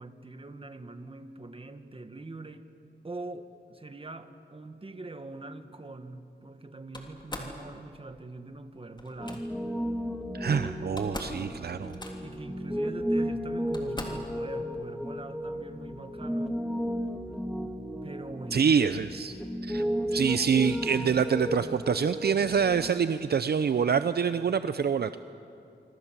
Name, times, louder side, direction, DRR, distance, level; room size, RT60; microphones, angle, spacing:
voice 1, 0.0-2.7 3.0-9.5 10.6-10.7 11.8-11.9 12.2-16.7 18.0-18.8, right 2 dB, 30° right, 9 dB, 1.7 m, -43 dB
Slam, 6.9-7.6 9.0-9.4 10.5-10.6 10.8-11.4 11.7-12.4 13.2-13.3 13.7-14.3, left 1 dB, 25° left, 3.5 m, -40 dB
Piano, 9.2-22.9, equal, ahead, 2.0 m, -34 dB
voice 2, 10.3-12.0 18.5-19.4 19.6-19.8 20.1-25.2, right 6 dB, 60° right, 11 dB, 0.7 m, -26 dB
26.0 x 25.5 x 7.5 m, 2.6 s
wide cardioid pair, 85°, 19 cm